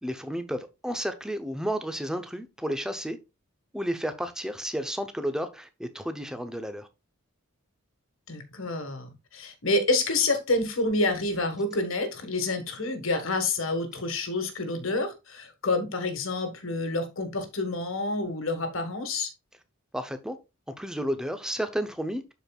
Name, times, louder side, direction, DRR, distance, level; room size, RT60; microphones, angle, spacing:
voice 1, 0.0-3.2 3.7-6.9 19.9-20.4 20.8-22.2, equal, 5° right, 0.7 m, -32 dB
voice 2, 8.3-19.3, left 2 dB, 65° left, 1.5 m, -28 dB
12.0 x 4.6 x 2.3 m
head